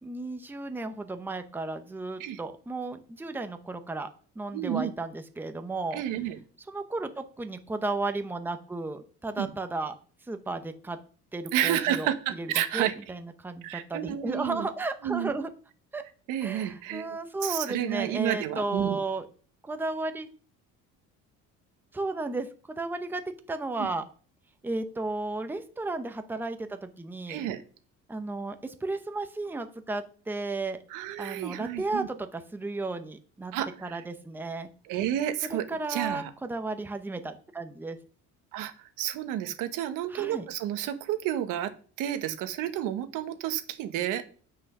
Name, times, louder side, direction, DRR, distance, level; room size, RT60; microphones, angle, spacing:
voice 1, 0.0-4.1 4.4-6.0 6.7-10.0 10.3-11.0 11.3-12.1 12.4-12.5 12.7-15.5 15.9-16.0 16.4-19.3 19.6-20.3 21.9-24.0 24.6-27.5 28.1-30.8 31.2-33.5 33.8-34.7 35.7-38.0 40.1-40.5, right 3 dB, 5° right, 8 dB, 0.7 m, -34 dB
voice 2, 4.5-4.9 5.9-6.4 9.4-9.5 11.5-12.9 13.6-14.7 15.0-15.3 16.3-17.1 17.4-19.0 23.8-23.9 27.3-27.6 30.9-32.1 33.5-34.0 34.8-36.3 38.5-38.7 39.0-41.7 42.0-44.3, right 11 dB, 80° right, 10 dB, 1.1 m, -30 dB
7.7 x 6.2 x 5.9 m, 0.43 s
cardioid pair, 130°, 31 cm